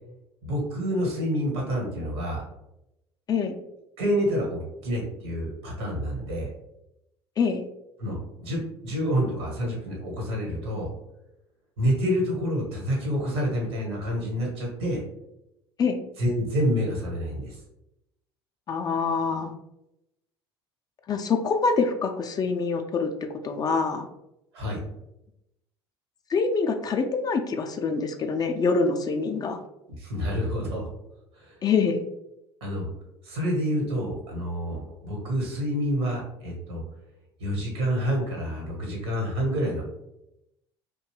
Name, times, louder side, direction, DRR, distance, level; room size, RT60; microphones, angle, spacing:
voice 1, 0.4-2.4 4.0-6.5 8.0-10.9 11.8-15.0 16.2-17.6 24.5-24.8 30.0-30.9 31.3-31.6 32.6-32.9 33.2-36.8 37.4-39.8, equal, 70° right, -1 dB, 1.1 m, -28 dB
voice 2, 18.7-19.5 21.1-24.1 26.3-29.6 31.6-32.0, left 4 dB, 30° left, 5 dB, 0.3 m, -25 dB
2.7 x 2.2 x 3.0 m, 0.86 s
figure-of-eight pair, 60°, 14 cm